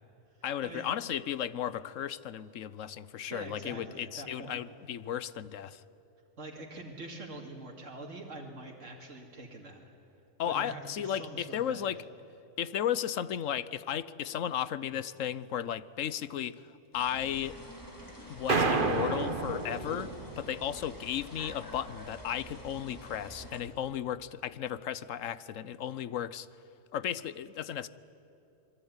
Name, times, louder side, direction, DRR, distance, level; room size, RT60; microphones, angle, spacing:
voice 1, 0.4-5.8 10.4-12.0 12.6-17.6 18.2-20.1 20.4-26.5 26.9-27.9, left 10 dB, 85° left, 16 dB, 1.2 m, -35 dB
voice 2, 3.3-4.6 6.4-9.8 10.4-11.9, right 2 dB, 75° right, -1 dB, 2.9 m, -44 dB
sound 1, 16.9-23.6, equal, 15° left, 3.9 m, -47 dB
sound 2, 18.5-20.9, right 3 dB, 45° right, 1.5 m, -30 dB
27.0 x 21.5 x 9.7 m, 2.8 s
omnidirectional pair, 1.3 m